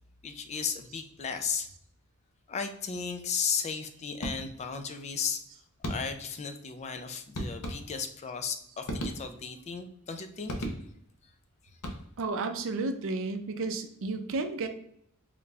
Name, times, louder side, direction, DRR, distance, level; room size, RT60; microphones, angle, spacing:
voice 1, 0.2-1.7 2.5-5.4 5.8-10.5, left 6 dB, 30° left, 7 dB, 0.3 m, -35 dB
sound 1, 4.2-4.8 5.8-6.4 7.3-8.2 8.8-9.6 10.5-11.2 11.7-12.4, equal, 80° left, 0.7 m, -37 dB
voice 2, 12.2-14.7, right 3 dB, 60° right, 8 dB, 0.5 m, -32 dB
3.8 x 2.2 x 3.2 m, 0.71 s
head